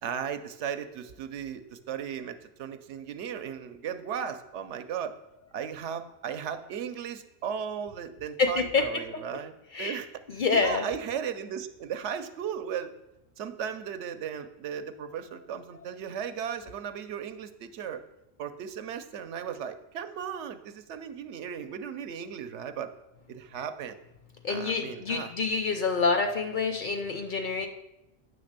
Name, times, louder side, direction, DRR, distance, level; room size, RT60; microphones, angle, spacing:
voice 1, 0.0-5.2 5.5-9.5 9.8-12.9 13.4-18.0 18.4-22.9 23.3-24.0 24.5-25.3, right 8 dB, 75° right, 9 dB, 0.9 m, -36 dB
voice 2, 8.4-8.8 9.7-10.0 10.3-10.8 24.4-27.7, left 4 dB, 55° left, 5 dB, 0.6 m, -27 dB
8.7 x 3.3 x 6.5 m, 0.91 s
omnidirectional pair, 1.2 m